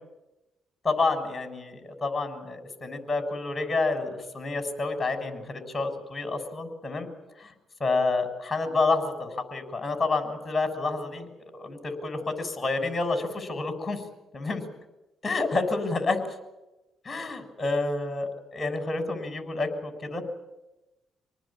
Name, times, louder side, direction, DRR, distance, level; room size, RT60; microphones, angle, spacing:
voice 1, 0.8-7.1 7.4-7.5 7.8-11.3 11.5-14.0 14.3-14.6 15.2-16.2 17.0-20.2, left 3 dB, 25° left, 7 dB, 6.6 m, -29 dB
27.0 x 19.0 x 8.9 m, 0.98 s
cardioid pair, 90°, 0 cm